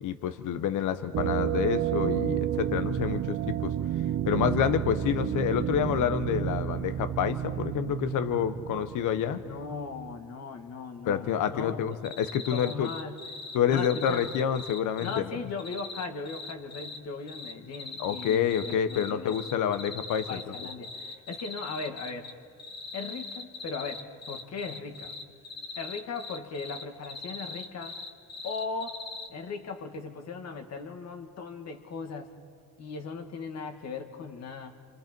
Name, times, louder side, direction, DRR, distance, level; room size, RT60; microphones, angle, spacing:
voice 1, 0.0-3.7 4.3-9.4 11.0-12.9 13.5-15.4 18.0-20.5, left 9 dB, 80° left, 11 dB, 1.2 m, -28 dB
sound 1, 1.1-9.8, right 11 dB, 60° right, 0.7 m, -31 dB
voice 2, 9.4-12.0 12.5-13.2 13.7-14.4 15.0-19.4 20.3-22.3 22.9-25.1 25.8-28.0 28.4-29.0 29.3-32.3 32.8-34.7, left 4 dB, 55° left, 5 dB, 2.1 m, -38 dB
sound 2, 12.0-15.2 15.6-17.0 17.3-22.3 22.6-29.3, left 4 dB, 35° left, 1.4 m, -40 dB
27.0 x 26.0 x 4.6 m, 2.3 s
cardioid pair, 115°, 31 cm